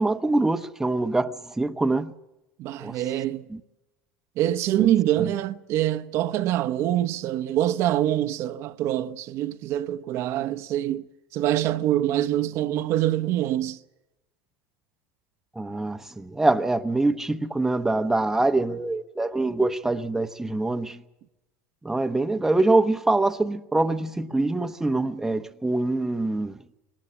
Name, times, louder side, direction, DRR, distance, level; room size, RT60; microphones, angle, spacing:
voice 1, 0.0-2.1 2.8-3.0 3.5-3.6 4.8-4.9 5.2-5.3 15.5-21.0 21.8-26.6, right 2 dB, 5° right, 1.0 m, -24 dB
voice 2, 2.6-3.5 4.4-11.0 11.3-13.8, right 12 dB, 55° right, 1.0 m, -25 dB
22.5 x 18.5 x 7.5 m
supercardioid pair, 115°, 5 cm